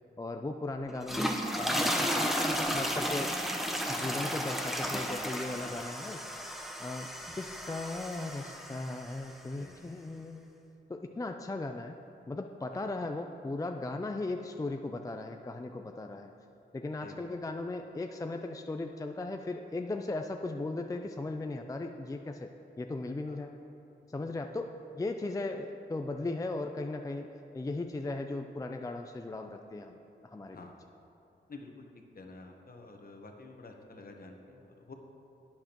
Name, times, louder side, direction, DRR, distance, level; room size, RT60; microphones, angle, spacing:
voice 1, 0.2-2.4 2.7-3.3 3.9-6.2 6.8-7.1 7.4-10.5 10.9-12.0 12.3-16.3 16.7-22.5 22.8-23.5 24.1-24.7 24.9-30.7, left 2 dB, 20° left, 5 dB, 0.4 m, -37 dB
sound 1, 0.9-9.2, equal, ahead, 0.9 m, -33 dB
voice 2, 9.5-9.8 12.7-12.9 17.0-17.2 23.3-23.4 24.1-24.3 30.5-30.8 31.5-31.8 32.1-34.9, left 3 dB, 50° left, 3 dB, 1.1 m, -50 dB
11.5 x 8.6 x 3.0 m, 2.9 s
cardioid pair, 60°, 19 cm